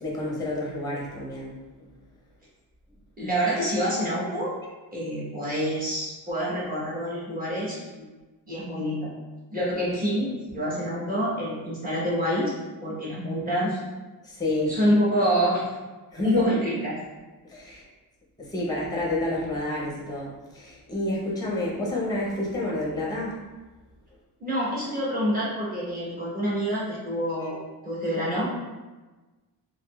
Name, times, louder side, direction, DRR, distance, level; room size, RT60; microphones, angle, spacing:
voice 1, 0.0-1.5 14.2-14.7 16.1-16.6 17.4-17.8 18.4-23.4, left 1 dB, 10° left, -4 dB, 0.7 m, -29 dB
voice 2, 3.2-4.5 4.9-8.0 8.5-9.1 9.5-12.5 12.8-13.8 14.7-15.6 16.2-16.9 17.6-17.8 24.4-27.6 27.8-28.4, equal, 20° right, -7 dB, 1.0 m, -27 dB
3.6 x 3.0 x 2.3 m, 1.2 s
cardioid pair, 175°, 40 cm